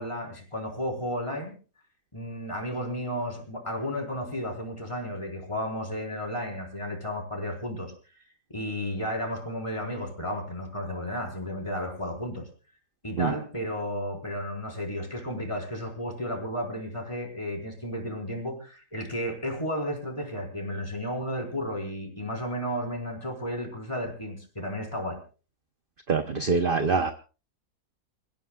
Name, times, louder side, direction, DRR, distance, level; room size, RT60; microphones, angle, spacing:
voice 1, 0.0-1.5 2.1-8.2 8.5-12.5 13.0-25.2, equal, 20° left, 1 dB, 4.7 m, -33 dB
voice 2, 26.1-27.1, right 5 dB, 40° right, 7 dB, 1.0 m, -24 dB
29.5 x 16.0 x 2.4 m, 0.35 s
omnidirectional pair, 1.7 m